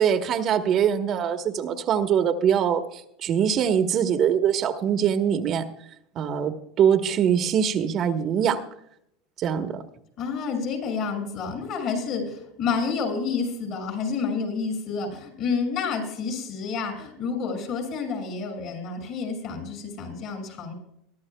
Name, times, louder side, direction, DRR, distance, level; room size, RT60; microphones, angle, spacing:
voice 1, 0.0-5.6 6.2-8.6 9.4-9.8, right 8 dB, 45° right, 7 dB, 1.2 m, -23 dB
voice 2, 10.2-20.7, left 5 dB, 55° left, 3 dB, 6.2 m, -29 dB
23.0 x 11.5 x 2.3 m, 0.75 s
hypercardioid pair, 105°, 0 cm